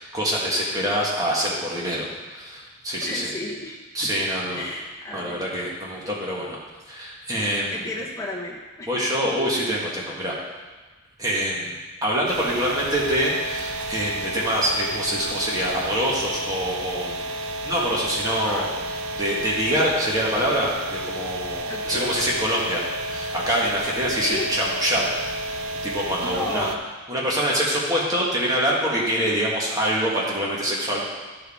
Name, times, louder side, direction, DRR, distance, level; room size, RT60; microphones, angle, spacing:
voice 1, 0.0-3.3 3.9-4.6 5.1-6.6 6.9-7.9 8.9-10.3 11.2-11.7 12.0-17.2 17.6-18.7 19.2-22.8 23.1-25.1 25.8-26.7 27.1-31.0, equal, 15° right, -5 dB, 1.5 m, -25 dB
voice 2, 3.0-3.8 4.5-5.5 7.7-8.9 18.3-18.7 21.7-22.2 24.2-24.5 26.2-26.8, left 2 dB, 15° left, -3 dB, 1.1 m, -33 dB
sound 1, 12.3-26.8, right 1 dB, 85° right, 0.6 m, -31 dB
11.5 x 4.6 x 3.6 m, 1.3 s
head